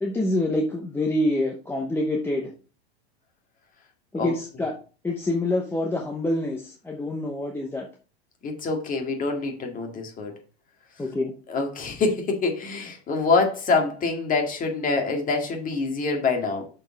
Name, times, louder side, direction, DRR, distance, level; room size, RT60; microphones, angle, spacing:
voice 1, 0.0-2.5 4.1-4.7 5.0-7.9 11.0-11.3, left 1 dB, 5° left, 1 dB, 0.8 m, -26 dB
voice 2, 8.4-10.3 11.5-16.7, left 4 dB, 25° left, 3 dB, 1.9 m, -25 dB
6.4 x 4.5 x 4.7 m, 0.36 s
supercardioid pair, 130°, 33 cm